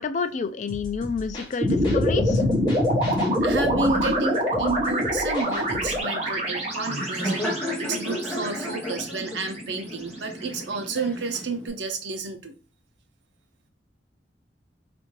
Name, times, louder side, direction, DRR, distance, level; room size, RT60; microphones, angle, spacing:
voice 1, 0.0-2.4, left 5 dB, 40° left, 0.3 m, -29 dB
sound 1, 0.7-6.0, equal, 25° left, 1.2 m, -38 dB
sound 2, 1.6-9.9, equal, 35° right, 1.0 m, -25 dB
voice 2, 3.4-12.6, right 3 dB, 85° right, 0.7 m, -30 dB
Laughter, 5.4-11.7, equal, 5° left, 0.8 m, -34 dB
4.3 x 2.5 x 3.0 m
head